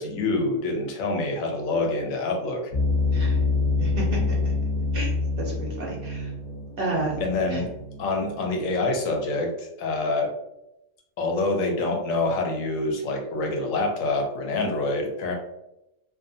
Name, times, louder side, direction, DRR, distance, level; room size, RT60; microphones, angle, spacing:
voice 1, 0.0-2.7 7.2-7.7 8.0-10.3 11.2-15.3, left 2 dB, 85° left, 2 dB, 1.0 m, -26 dB
sound 1, 2.7-9.2, left 3 dB, 40° left, 0.7 m, -27 dB
voice 2, 3.8-4.5 4.9-5.1 5.4-6.3 6.8-7.6, right 2 dB, 60° right, -2 dB, 0.6 m, -31 dB
2.6 x 2.2 x 2.6 m, 0.88 s
omnidirectional pair, 1.4 m